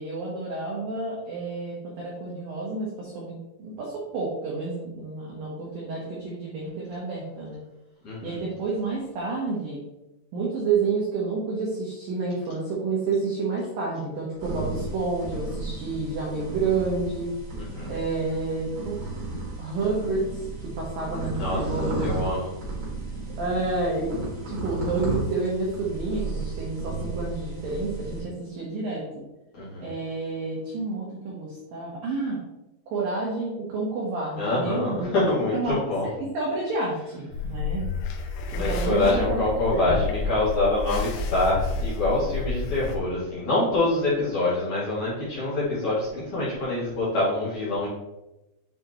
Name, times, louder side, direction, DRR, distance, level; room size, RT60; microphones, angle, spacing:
voice 1, 0.0-7.6 8.2-9.8 10.3-17.3 17.9-19.0 19.6-20.5 20.8-22.2 23.4-29.2 29.8-32.4 32.9-35.2 35.5-35.8 36.2-37.8 38.5-39.5 39.7-40.0, right 3 dB, 90° right, -4 dB, 1.9 m, -29 dB
voice 2, 8.0-8.4 17.7-17.9 21.4-22.5 29.5-29.9 34.4-36.1 38.6-47.9, left 2 dB, 55° left, -9 dB, 2.3 m, -25 dB
sound 1, 14.4-28.2, right 3 dB, 60° right, 1.2 m, -34 dB
sound 2, 37.3-43.0, left 3 dB, 85° left, 3.1 m, -30 dB
9.1 x 3.9 x 3.1 m, 0.96 s
omnidirectional pair, 5.8 m